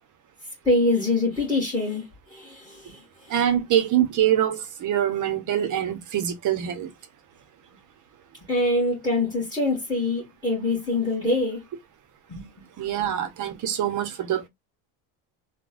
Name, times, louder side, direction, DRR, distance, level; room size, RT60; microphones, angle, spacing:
voice 1, 0.6-3.3 8.5-11.6 12.3-12.5, left 2 dB, 10° left, 1.7 m, -25 dB
voice 2, 3.3-6.9 12.8-14.5, right 10 dB, 40° right, 0.8 m, -24 dB
3.8 x 2.3 x 2.4 m
cardioid pair, 130°, 49 cm